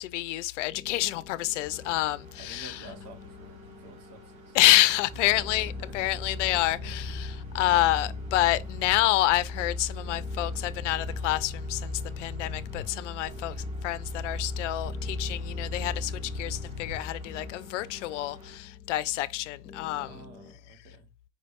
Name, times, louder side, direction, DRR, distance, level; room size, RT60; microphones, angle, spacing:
voice 1, 0.0-2.9 4.5-20.2, left 16 dB, 60° left, 0.5 m, -28 dB
sound 1, 0.7-20.5, left 5 dB, 30° left, 0.9 m, -51 dB
sound 2, 1.6-18.6, right 2 dB, 85° right, 1.6 m, -53 dB
voice 2, 2.4-4.7 5.2-6.2 6.5-7.0 20.0-21.1, right 3 dB, 65° right, 1.6 m, -50 dB
sound 3, 5.1-17.5, left 2 dB, 15° right, 1.1 m, -36 dB
5.0 x 2.7 x 3.2 m
hypercardioid pair, 110°, 40 cm